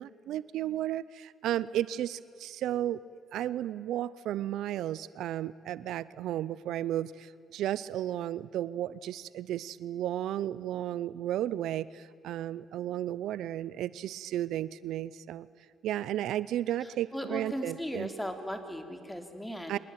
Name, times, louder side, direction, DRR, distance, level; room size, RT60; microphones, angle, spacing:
voice 1, 0.0-15.5 15.8-18.1 19.7-19.8, right 12 dB, 85° right, 18 dB, 0.6 m, -33 dB
voice 2, 16.8-19.8, equal, 5° left, 6 dB, 3.1 m, -37 dB
24.5 x 19.5 x 9.1 m, 2.5 s
cardioid pair, 90°, 0 cm